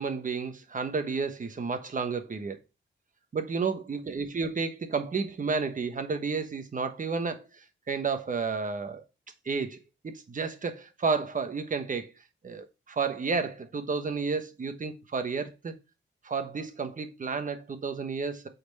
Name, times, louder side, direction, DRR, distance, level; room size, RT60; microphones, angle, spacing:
voice 1, 0.0-2.6 3.3-9.0 9.4-12.1 12.4-15.7 16.2-18.5, right 4 dB, 40° right, 1.3 m, -31 dB
8.5 x 4.4 x 4.2 m
wide cardioid pair, 125°, 20 cm